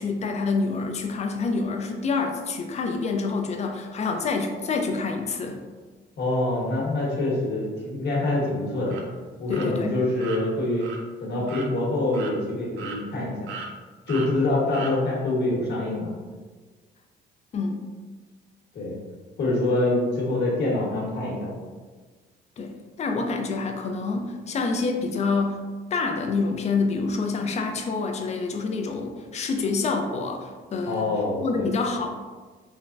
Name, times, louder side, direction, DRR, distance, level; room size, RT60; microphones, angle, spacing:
voice 1, 0.0-5.6 9.5-9.9 17.5-17.8 22.6-25.6 25.9-32.1, left 4 dB, 35° left, 3 dB, 0.4 m, -27 dB
voice 2, 6.2-9.0 9.4-10.9 11.2-13.5 14.1-16.1 18.7-19.0 19.4-21.5 30.9-31.7, left 2 dB, 60° left, -4 dB, 1.1 m, -25 dB
sound 1, 8.9-9.0 9.5-9.7 10.2-10.4 10.8-11.0 11.5-11.7 12.1-12.3 12.8-13.2 13.5-13.7 14.1-14.3 14.7-14.9, right 5 dB, 85° right, 0.4 m, -37 dB
3.3 x 2.1 x 2.5 m, 1.4 s
cardioid pair, 90°, 20 cm